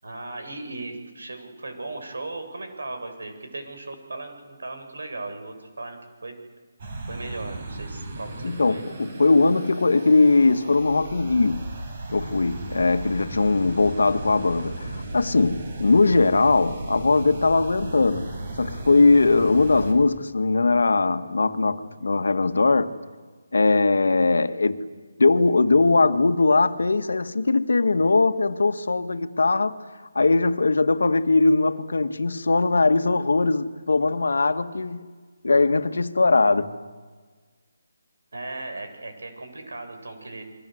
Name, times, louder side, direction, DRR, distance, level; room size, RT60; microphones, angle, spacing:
voice 1, 0.0-6.4 7.1-8.8 38.3-40.4, right 2 dB, 80° right, 7.6 m, -37 dB
sound 1, 6.8-19.9, right 2 dB, 35° right, 5.1 m, -36 dB
voice 2, 8.4-11.7 12.1-14.7 15.1-22.9 23.5-24.9 25.2-29.8 30.2-35.0 35.4-36.7, left 3 dB, 85° left, 1.9 m, -20 dB
29.5 x 23.0 x 8.0 m
hypercardioid pair, 175°, 0 cm